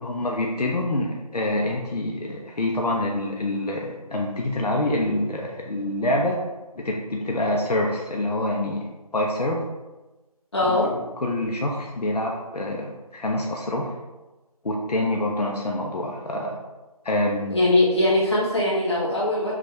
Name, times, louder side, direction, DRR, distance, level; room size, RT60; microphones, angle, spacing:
voice 1, 0.0-6.4 6.8-8.9 9.1-9.6 10.7-10.8 11.2-13.9 14.6-16.6 17.0-17.6, left 1 dB, 85° left, -1 dB, 0.7 m, -26 dB
voice 2, 10.5-10.9 17.5-19.5, left 2 dB, 45° left, -7 dB, 1.5 m, -21 dB
5.8 x 2.4 x 3.0 m, 1.1 s
figure-of-eight pair, 180°, 20 cm